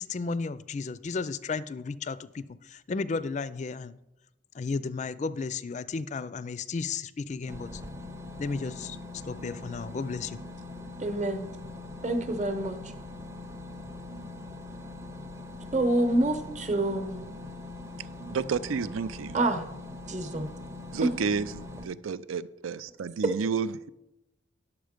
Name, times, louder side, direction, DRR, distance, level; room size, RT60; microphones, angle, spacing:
voice 1, 0.0-4.0 4.5-7.8 8.4-10.4, left 4 dB, 35° left, 0.3 m, -34 dB
sound 1, 7.5-21.8, left 2 dB, 15° right, 0.6 m, -42 dB
voice 2, 11.0-11.5 12.0-12.8 15.7-17.2 19.3-19.6 20.1-20.5 21.0-21.1, right 2 dB, 35° right, 0.9 m, -27 dB
voice 3, 18.2-19.4 20.9-21.5 21.8-23.9, right 5 dB, 90° right, 0.5 m, -31 dB
10.5 x 7.1 x 5.1 m
head